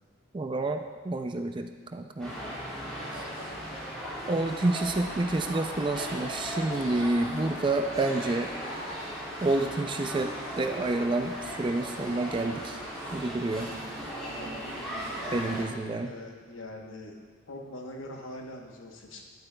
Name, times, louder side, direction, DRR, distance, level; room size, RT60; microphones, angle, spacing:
voice 1, 0.3-2.3 3.1-3.2 4.3-8.5 9.4-12.8 13.1-13.7 15.3-16.1, right 2 dB, 25° right, 6 dB, 0.3 m, -29 dB
sound 1, 2.2-15.6, equal, 5° left, 2.2 m, -37 dB
voice 2, 3.1-3.8 5.1-5.2 15.3-17.1 17.5-19.2, left 1 dB, 75° left, 1 dB, 1.0 m, -44 dB
9.7 x 8.6 x 2.2 m, 1.5 s
head